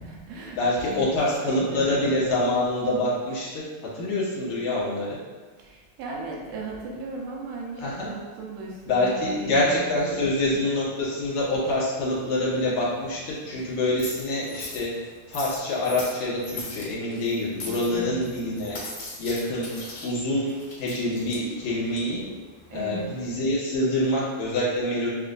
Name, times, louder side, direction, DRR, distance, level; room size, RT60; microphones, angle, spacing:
voice 1, 0.0-1.2 1.5-2.1 5.6-10.6 17.9-18.3 22.7-23.1, right 2 dB, 85° right, -2 dB, 2.3 m, -37 dB
voice 2, 0.6-3.7 3.9-5.2 7.8-8.1 8.9-14.9 15.3-18.8 19.2-19.7 20.0-20.5 20.8-22.2 22.7-25.1, left 1 dB, 70° left, -8 dB, 2.2 m, -26 dB
sound 1, 11.3-23.3, left 2 dB, 50° left, 1.6 m, -42 dB
6.3 x 2.4 x 2.5 m, 1.4 s
omnidirectional pair, 3.7 m